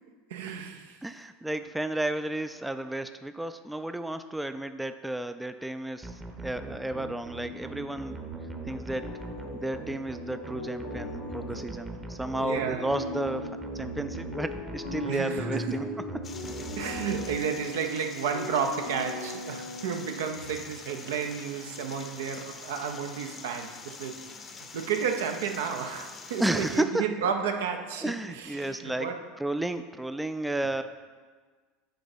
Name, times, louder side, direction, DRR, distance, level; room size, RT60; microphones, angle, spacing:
voice 1, 0.3-1.0 12.3-12.9 15.1-15.8 16.8-24.2 24.4-29.2, right 7 dB, 75° right, 5 dB, 0.6 m, -32 dB
voice 2, 1.0-8.1 8.6-9.1 9.5-15.9 16.1-16.2 26.4-27.1 28.0-29.1 29.4-30.8, right 1 dB, 5° right, 10 dB, 0.3 m, -32 dB
sound 1, 6.0-17.9, right 2 dB, 20° right, 0.8 m, -40 dB
sound 2, 8.9-20.7, left 3 dB, 85° left, 1.2 m, -40 dB
sound 3, 16.2-26.8, left 5 dB, 35° left, 0.7 m, -45 dB
8.8 x 3.0 x 5.3 m, 1.5 s
hypercardioid pair, 80°, 0 cm